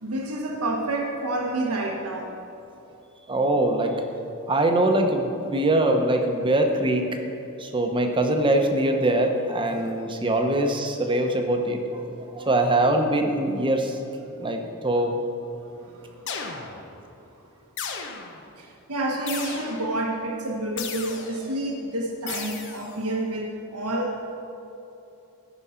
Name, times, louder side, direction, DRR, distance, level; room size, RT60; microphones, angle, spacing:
voice 1, 0.0-2.3 15.7-16.7 18.6-24.4, right 1 dB, 90° right, 0 dB, 1.2 m, -29 dB
voice 2, 3.3-4.0 4.5-7.1 7.6-14.0 14.3-15.2, right 1 dB, 20° right, 4 dB, 0.9 m, -23 dB
sound 1, 16.3-17.0 17.8-18.5 19.3-20.0 20.8-21.5 22.3-23.0, left 6 dB, 55° left, 1.0 m, -35 dB
13.5 x 6.2 x 5.8 m, 2.9 s
head